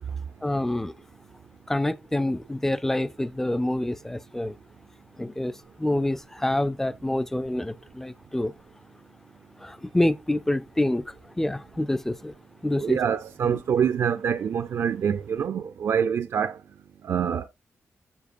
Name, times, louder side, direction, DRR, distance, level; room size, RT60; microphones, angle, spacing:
voice 1, 0.4-0.9 1.7-4.5 5.2-8.5 9.6-12.3 12.6-13.0 13.4-13.6, left 1 dB, 10° left, 0.3 m, -27 dB
voice 2, 12.8-16.6 17.0-17.5, right 7 dB, 70° right, 0.4 m, -25 dB
7.1 x 6.5 x 2.5 m
wide cardioid pair, 175°, 5 cm